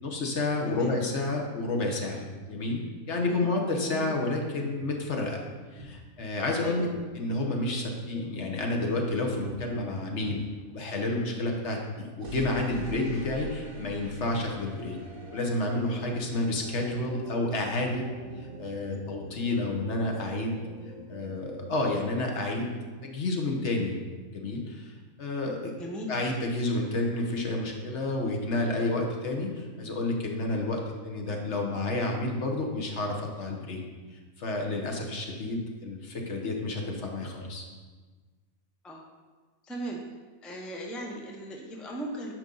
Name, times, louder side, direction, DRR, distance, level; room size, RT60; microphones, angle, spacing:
voice 1, 0.0-5.4 5.7-6.9 7.1-10.4 10.7-15.0 15.3-18.0 18.4-20.6 21.1-22.8 23.0-23.9 24.3-24.9 25.2-25.8 26.1-33.8 34.4-37.6, left 2 dB, 55° left, 1 dB, 1.2 m, -30 dB
sound 1, 4.7-4.9 5.7-5.9 6.9-7.4 8.1-8.3 8.9-9.1 9.3-9.5 10.2-10.4 12.2-22.0, right 1 dB, 75° right, 1.5 m, -45 dB
voice 2, 39.6-40.0 40.4-42.3, right 1 dB, ahead, 0 dB, 0.6 m, -37 dB
9.1 x 5.2 x 3.9 m, 1.4 s
omnidirectional pair, 1.5 m